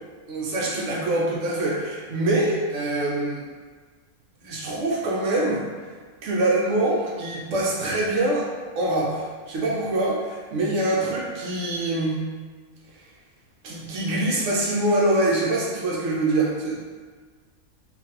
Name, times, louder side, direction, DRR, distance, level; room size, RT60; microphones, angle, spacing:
voice 1, 0.3-3.4 4.4-5.6 6.2-8.5 8.8-12.2 13.6-16.9, right 2 dB, 65° right, -4 dB, 1.0 m, -24 dB
3.0 x 2.6 x 2.7 m, 1.5 s
omnidirectional pair, 1.5 m